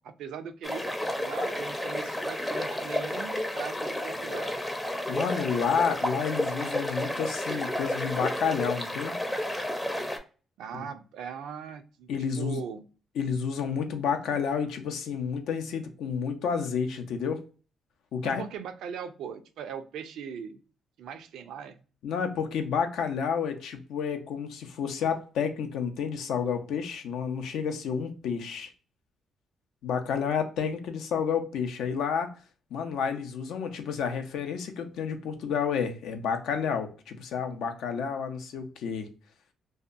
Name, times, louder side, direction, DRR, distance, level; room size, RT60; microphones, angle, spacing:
voice 1, 0.0-4.5 10.6-12.8 18.2-20.6 21.0-21.8, right 7 dB, 80° right, 0.4 m, -40 dB
sound 1, 0.6-10.2, left 1 dB, 10° left, 0.5 m, -31 dB
voice 2, 5.1-9.2 10.7-10.9 12.1-12.6 13.2-17.4 18.1-18.4 22.0-28.7 29.8-32.3 32.7-39.1, left 6 dB, 80° left, 0.5 m, -30 dB
2.7 x 2.2 x 2.4 m
cardioid pair, 90°, 0 cm